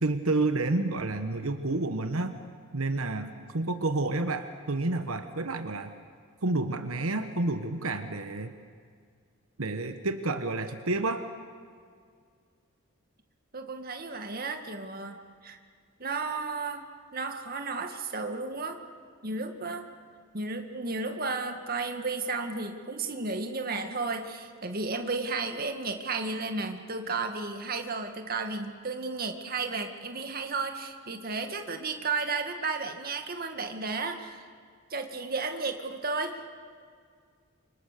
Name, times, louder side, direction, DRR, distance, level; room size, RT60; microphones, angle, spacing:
voice 1, 0.0-2.3 2.7-5.9 6.4-8.5 9.6-11.2, right 2 dB, 75° right, 7 dB, 1.3 m, -29 dB
voice 2, 13.5-15.2 15.4-15.6 16.0-16.8 17.1-18.8 19.2-19.8 20.3-34.5 34.9-36.4, right 3 dB, 45° right, 5 dB, 1.9 m, -33 dB
29.0 x 25.5 x 6.8 m, 2.1 s
head